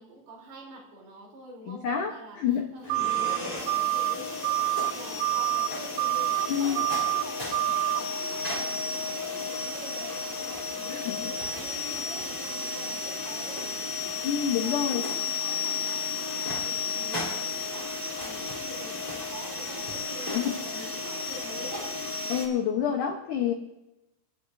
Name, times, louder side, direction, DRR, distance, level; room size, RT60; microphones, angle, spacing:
voice 1, 0.0-22.0, right 1 dB, 65° right, -2 dB, 5.3 m, -46 dB
voice 2, 1.7-2.7 6.5-6.8 10.9-11.3 14.2-15.0 20.2-20.9 22.3-23.5, left 8 dB, 80° left, 2 dB, 1.8 m, -28 dB
sound 1, 2.8-22.5, left 4 dB, 10° left, 2.4 m, -33 dB
sound 2, 2.9-3.4 3.7-4.2 4.4-4.9 5.2-5.7 6.0-6.5 6.8-7.2 7.5-8.0, right 20 dB, 90° right, 2.9 m, -26 dB
27.5 x 11.5 x 2.6 m, 0.95 s
omnidirectional pair, 5.0 m